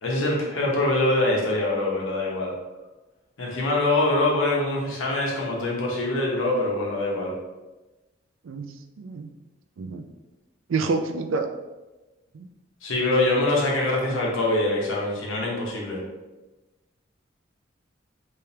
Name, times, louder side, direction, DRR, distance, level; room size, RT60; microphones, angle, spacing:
voice 1, 0.0-2.5 3.4-7.3 12.8-16.0, left 2 dB, 80° left, -3 dB, 1.0 m, -24 dB
voice 2, 8.4-9.3 9.8-10.1 10.7-11.5 12.3-12.5, right 4 dB, 85° right, 7 dB, 0.4 m, -28 dB
3.3 x 3.2 x 2.8 m, 1.1 s
head